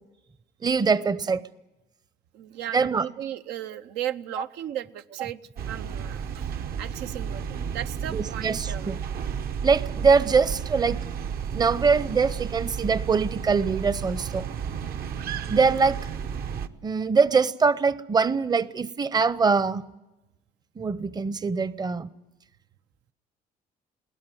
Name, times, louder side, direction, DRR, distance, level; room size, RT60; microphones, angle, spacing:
voice 1, 0.6-1.4 2.7-3.1 8.1-9.0 9.6-11.0 11.5-14.4 15.5-16.0 16.8-19.9 20.8-22.1, right 5 dB, 25° right, 0.7 m, -23 dB
voice 2, 2.3-5.4 5.7-6.4 6.8-8.9, right 11 dB, 90° right, 0.8 m, -35 dB
sound 1, 5.6-16.7, right 7 dB, 65° right, 1.0 m, -32 dB
22.0 x 18.0 x 9.3 m
cardioid pair, 110°, 17 cm